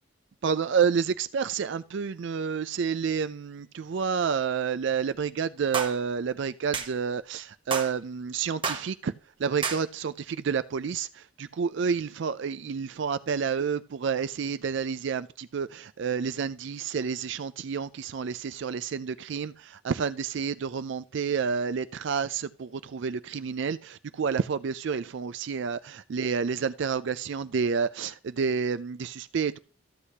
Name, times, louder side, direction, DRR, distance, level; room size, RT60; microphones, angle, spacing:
voice 1, 0.4-9.1 9.4-29.6, right 6 dB, 60° right, 0.4 m, -29 dB
sound 1, 5.7-6.0 6.7-6.9 7.7-7.9 8.6-8.9 9.6-9.8, right 5 dB, 25° right, 0.9 m, -30 dB
14.0 x 8.2 x 2.8 m
head